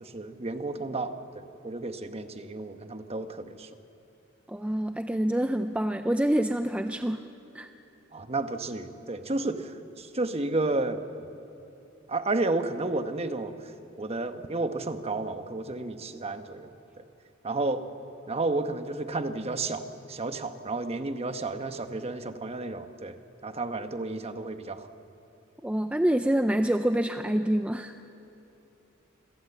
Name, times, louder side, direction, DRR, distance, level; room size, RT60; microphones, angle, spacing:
voice 1, 0.0-3.7 8.1-11.0 12.1-13.5 14.0-16.7 17.0-17.1 17.4-17.8 18.3-23.1 23.4-24.9, right 2 dB, 30° right, 8 dB, 1.1 m, -32 dB
voice 2, 4.5-7.2 7.5-7.7 25.6-27.9, right 1 dB, 5° right, 8 dB, 0.5 m, -26 dB
26.0 x 17.0 x 8.0 m, 3.0 s
head